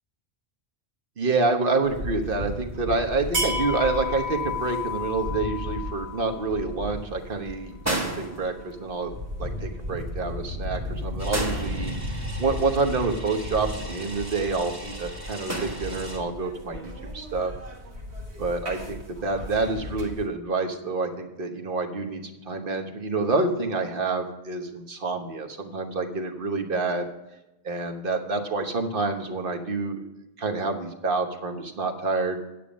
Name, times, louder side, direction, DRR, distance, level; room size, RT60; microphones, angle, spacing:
voice 1, 1.2-9.1 9.4-11.9 12.4-17.5 18.4-27.1 27.6-30.0 30.4-32.4, right 3 dB, 55° right, 4 dB, 1.3 m, -28 dB
sound 1, 1.8-20.3, left 2 dB, 80° right, 2.0 m, -34 dB
sound 2, 7.8-9.1 11.3-12.5 15.5-16.4 17.7-17.9, right 1 dB, 15° right, 1.3 m, -33 dB
sound 3, 11.2-16.2, right 1 dB, 30° right, 2.1 m, -41 dB
9.4 x 8.7 x 5.2 m, 0.96 s
omnidirectional pair, 1.1 m